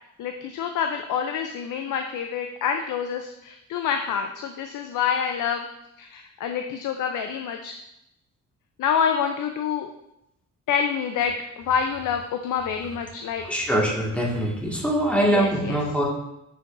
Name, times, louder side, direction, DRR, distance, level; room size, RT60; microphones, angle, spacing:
voice 1, 0.2-5.7 6.0-7.7 8.8-9.9 10.7-11.3 11.6-13.4 15.3-15.5, left 7 dB, 85° left, 5 dB, 0.6 m, -27 dB
voice 2, 13.4-16.0, right 1 dB, 5° left, -3 dB, 1.7 m, -23 dB
9.8 x 5.1 x 2.5 m, 0.84 s
cardioid pair, 125°, 30 cm